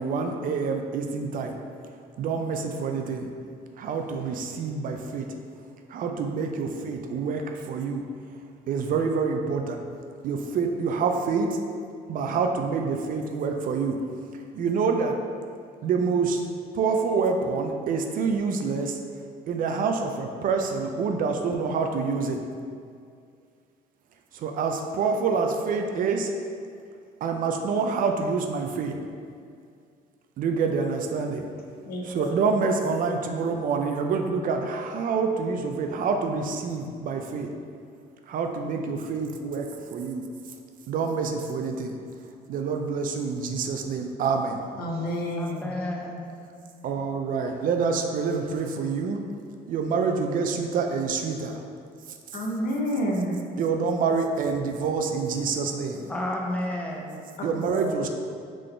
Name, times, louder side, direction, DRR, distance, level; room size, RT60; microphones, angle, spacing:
voice 1, 0.0-1.6 2.2-3.3 3.8-5.3 5.9-8.1 8.7-9.8 10.2-11.6 12.1-14.0 14.3-15.2 15.8-16.5 16.7-19.0 19.5-22.4 24.3-26.3 27.2-29.0 30.4-31.5 32.1-37.5 38.3-40.2 40.9-42.0 42.5-44.6 46.8-49.2 49.7-51.6 52.1-52.2 53.6-56.1 57.4-58.1, right 5 dB, 55° right, 4 dB, 0.4 m, -27 dB
voice 2, 31.8-32.3 44.8-45.8 52.3-53.4 57.4-57.8, equal, 60° left, -1 dB, 0.8 m, -29 dB
voice 3, 45.4-46.3 56.1-57.2, left 1 dB, 5° left, -1 dB, 0.6 m, -31 dB
3.8 x 3.7 x 3.3 m, 2.3 s
cardioid pair, 110°, 17 cm